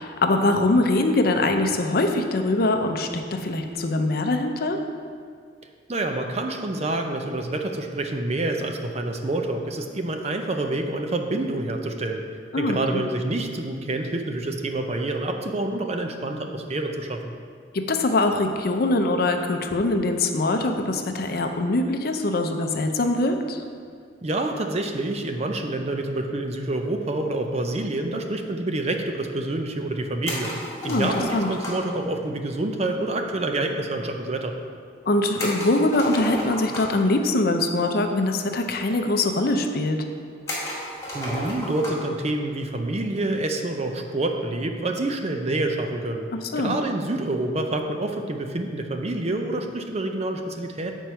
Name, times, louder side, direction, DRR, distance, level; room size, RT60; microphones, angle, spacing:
voice 1, 0.0-4.8 12.5-13.0 17.7-23.6 30.8-31.5 35.1-40.0 46.5-46.8, left 2 dB, 55° left, 5 dB, 0.6 m, -23 dB
voice 2, 5.9-12.2 12.6-17.2 24.2-30.5 30.8-34.5 41.1-46.3 46.6-50.9, right 2 dB, 35° right, 4 dB, 0.5 m, -27 dB
sound 1, 30.2-32.0 35.4-37.1 38.2-38.3 38.5-38.6 39.4-39.5 40.5-42.1, left 1 dB, 15° left, 1.8 m, -32 dB
7.8 x 4.5 x 5.6 m, 2.1 s
head